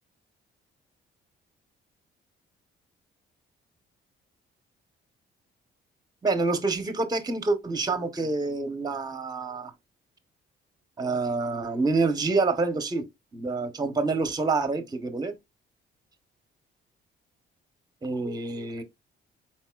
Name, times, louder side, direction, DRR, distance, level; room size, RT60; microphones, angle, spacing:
voice 1, 6.2-9.7 11.0-13.0 13.3-15.3 18.0-18.8, right 3 dB, 20° right, 0.7 m, -27 dB
4.3 x 4.1 x 2.2 m
cardioid pair, 90°, 20 cm